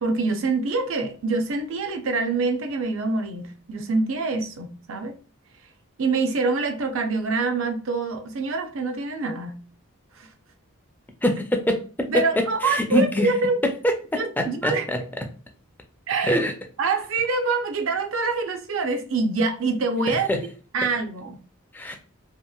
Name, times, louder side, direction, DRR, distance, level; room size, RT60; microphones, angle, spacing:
voice 1, 0.0-5.1 6.0-9.6 10.1-10.3 12.1-13.6 14.2-14.9 16.1-16.4 16.8-20.3 20.7-21.4, right 3 dB, 65° right, 0.5 m, -25 dB
voice 2, 11.2-11.8 12.6-13.3 13.8-15.0 16.2-16.5 20.3-20.4 21.7-22.0, equal, 10° left, 0.3 m, -24 dB
2.8 x 2.8 x 2.3 m
head